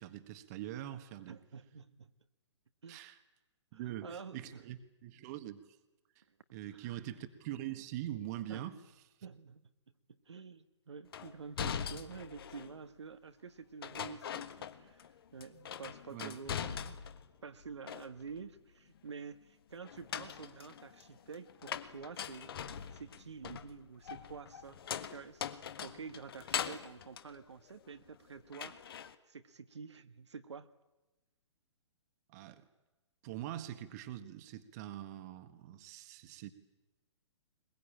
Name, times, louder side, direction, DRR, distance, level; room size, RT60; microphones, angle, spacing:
voice 1, 0.0-1.4 2.9-3.2 3.7-5.7 6.1-6.2 6.5-8.8 16.1-16.4 32.3-32.6 33.2-36.5, right 13 dB, 35° right, 10 dB, 1.6 m, -43 dB
voice 2, 1.3-2.1 2.8-3.1 3.7-4.8 6.7-7.0 8.5-8.7 9.2-17.2 17.4-22.5 22.9-24.8 25.1-28.8 29.3-30.7, right 5 dB, 65° right, 10 dB, 1.4 m, -49 dB
sound 1, 11.1-12.8 13.8-15.1 15.4-17.3 17.6-18.4 19.8-28.1 28.5-29.1, left 8 dB, 50° left, 1.5 m, -42 dB
22.0 x 21.5 x 8.8 m, 1.1 s
figure-of-eight pair, 120°, 16 cm